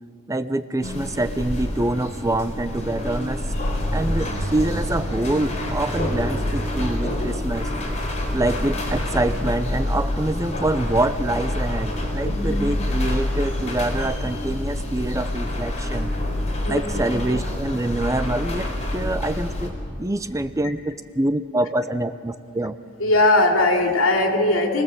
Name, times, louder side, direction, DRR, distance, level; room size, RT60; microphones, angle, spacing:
voice 1, 0.3-3.4 3.9-7.7 8.3-16.1 16.7-19.7 20.0-22.8, right 1 dB, 15° right, 11 dB, 0.6 m, -25 dB
sound 1, 0.8-19.7, left 1 dB, 35° left, 4.0 m, -27 dB
voice 2, 12.2-12.7 16.6-17.1 23.0-24.8, left 2 dB, 70° left, 3 dB, 2.8 m, -20 dB
29.0 x 19.0 x 7.6 m, 2.3 s
head